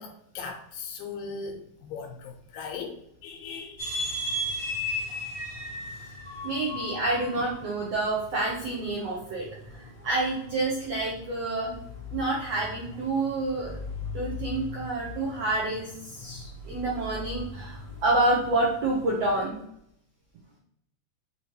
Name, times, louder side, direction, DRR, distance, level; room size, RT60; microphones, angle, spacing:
voice 1, 0.0-3.8, left 5 dB, 85° left, 3 dB, 2.5 m, -39 dB
sound 1, 3.8-19.4, left 2 dB, 30° left, 1.7 m, -38 dB
voice 2, 6.4-11.7 12.1-13.8 14.1-19.6, right 2 dB, 75° right, -4 dB, 1.5 m, -28 dB
6.1 x 2.9 x 3.0 m, 0.72 s
omnidirectional pair, 4.1 m